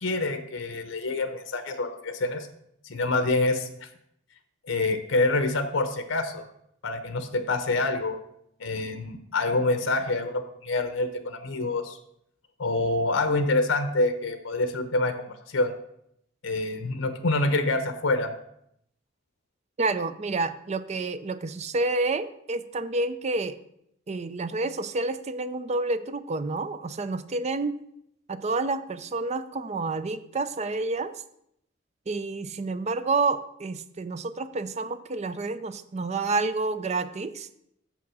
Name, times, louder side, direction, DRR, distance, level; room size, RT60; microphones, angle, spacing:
voice 1, 0.0-2.5 2.8-3.9 4.7-6.5 6.8-8.2 8.6-12.0 12.6-15.7 16.4-18.3, left 2 dB, 85° left, 10 dB, 0.8 m, -26 dB
voice 2, 19.8-23.6 24.1-27.8 28.3-31.1 32.1-37.5, right 3 dB, 35° right, 12 dB, 0.5 m, -29 dB
6.9 x 6.0 x 6.2 m, 0.75 s
head